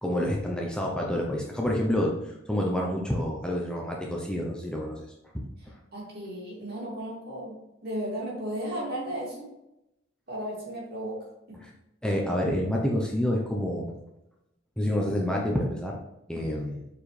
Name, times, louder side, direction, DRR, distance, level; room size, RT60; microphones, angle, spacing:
voice 1, 0.0-5.1 5.3-5.4 11.6-11.7 12.0-13.9 14.8-16.0 16.3-16.8, left 1 dB, 5° left, -1 dB, 0.7 m, -28 dB
voice 2, 5.9-9.5 10.3-11.6, right 1 dB, 55° right, -4 dB, 2.5 m, -35 dB
7.3 x 4.5 x 3.3 m, 0.87 s
head